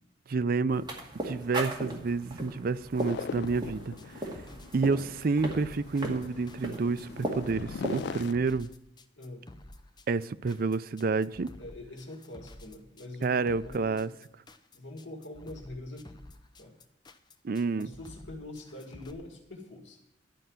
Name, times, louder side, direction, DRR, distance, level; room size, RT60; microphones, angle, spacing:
voice 1, 0.3-0.8 1.2-3.9 4.7-8.7 10.1-11.5 13.2-14.1 17.4-17.9, right 4 dB, 50° right, 0.4 m, -29 dB
sound 1, 0.7-8.3, right 1 dB, 25° right, 2.1 m, -38 dB
sound 2, 3.0-8.3, left 6 dB, 60° left, 0.3 m, -41 dB
sound 3, 3.0-19.1, left 1 dB, 25° left, 0.7 m, -50 dB
voice 2, 11.6-14.2 14.7-16.2 16.6-16.8 17.8-20.0, left 2 dB, 80° left, 2.1 m, -44 dB
11.5 x 5.6 x 9.0 m
head